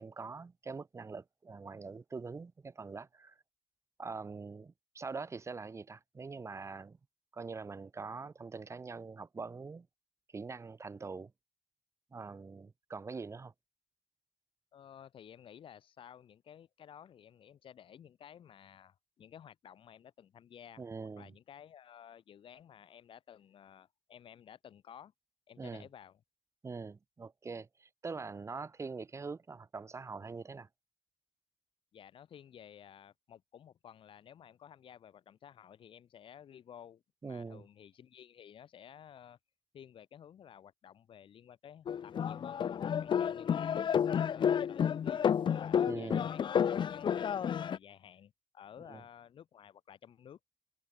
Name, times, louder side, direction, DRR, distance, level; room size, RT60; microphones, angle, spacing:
voice 1, 0.0-3.3 4.0-7.0 7.3-9.9 10.3-11.3 12.1-13.5 20.8-21.3 25.6-25.8 26.6-30.7 37.2-37.6 45.9-46.3 48.9-49.0, right 4 dB, 35° right, 3.3 m, -43 dB
voice 2, 14.7-25.1 25.5-26.2 31.9-39.4 39.7-42.7 43.0-43.9 44.3-50.4, left 9 dB, 80° left, 6.6 m, -54 dB
sound 1, 41.9-47.8, left 8 dB, 65° left, 1.2 m, -31 dB
wide cardioid pair, 130°, 9 cm